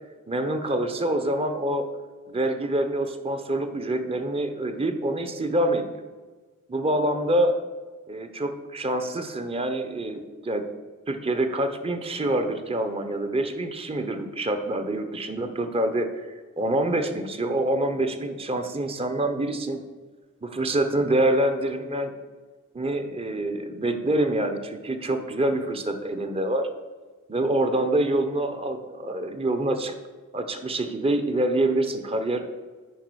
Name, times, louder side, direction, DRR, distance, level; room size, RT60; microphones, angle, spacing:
voice 1, 0.3-1.8 2.3-5.9 6.7-7.5 8.1-10.7 11.1-16.3 16.6-19.8 20.4-22.1 22.7-26.7 27.3-29.9 30.3-32.4, right 1 dB, 25° right, 8 dB, 0.8 m, -26 dB
9.3 x 5.0 x 6.2 m, 1.4 s
head